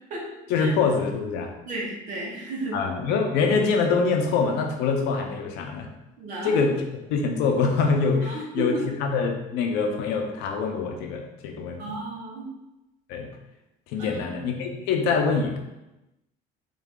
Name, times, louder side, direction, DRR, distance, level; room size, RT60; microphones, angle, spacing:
voice 1, 0.5-1.5 2.7-5.9 6.4-6.7 7.1-12.0 13.1-13.3 13.9-15.6, left 4 dB, 75° left, 3 dB, 0.6 m, -24 dB
voice 2, 1.6-2.8 6.2-6.5 8.2-8.8 11.8-12.5 14.0-14.3, right 2 dB, 50° right, -4 dB, 1.1 m, -33 dB
3.7 x 2.4 x 3.6 m, 0.96 s
cardioid pair, 165°, 17 cm